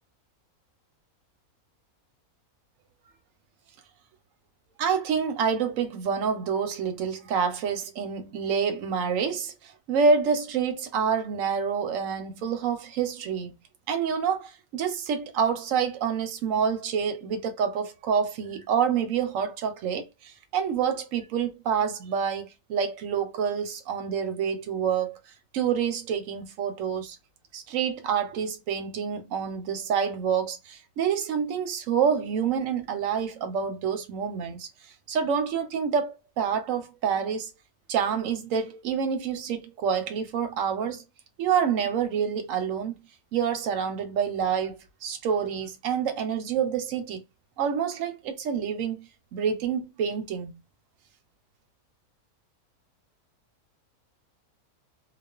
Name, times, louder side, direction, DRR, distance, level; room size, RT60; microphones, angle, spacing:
voice 1, 4.8-13.5 13.9-25.2 25.5-27.2 27.5-34.7 35.1-37.5 37.9-41.0 41.4-43.0 43.3-47.2 47.6-49.0 49.3-50.5, right 7 dB, 70° right, 0.9 m, -27 dB
2.4 x 2.3 x 2.3 m
omnidirectional pair, 1.6 m